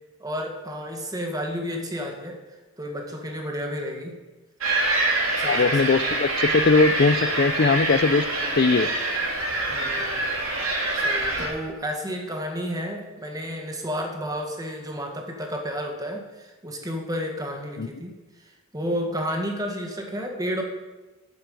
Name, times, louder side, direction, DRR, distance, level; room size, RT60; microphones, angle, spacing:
voice 1, 0.2-2.4 2.8-4.2 5.4-5.9 9.7-10.3 10.9-18.2 18.7-20.6, equal, 15° right, 2 dB, 1.7 m, -31 dB
sound 1, 4.6-11.5, right 2 dB, 65° right, 3.2 m, -25 dB
voice 2, 5.4-8.3 8.6-8.9 17.8-17.9, left 4 dB, 45° left, 16 dB, 0.5 m, -20 dB
9.2 x 8.6 x 7.7 m, 1.2 s
head